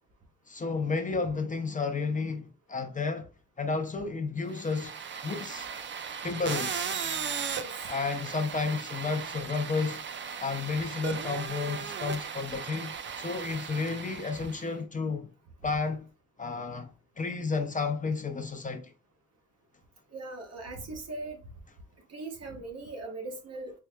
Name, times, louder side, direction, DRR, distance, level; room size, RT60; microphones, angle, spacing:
voice 1, 0.5-3.3 3.6-4.9 5.2-5.7 6.2-7.0 7.9-10.0 10.4-15.3 15.6-16.1 16.4-18.9, left 4 dB, 25° left, 0.6 m, -32 dB
sound 1, 4.5-14.7, right 7 dB, 40° right, 0.5 m, -37 dB
voice 2, 20.1-21.4 22.1-23.7, right 2 dB, 55° right, 1.3 m, -39 dB
4.6 x 3.2 x 2.2 m
cardioid pair, 90°, 30 cm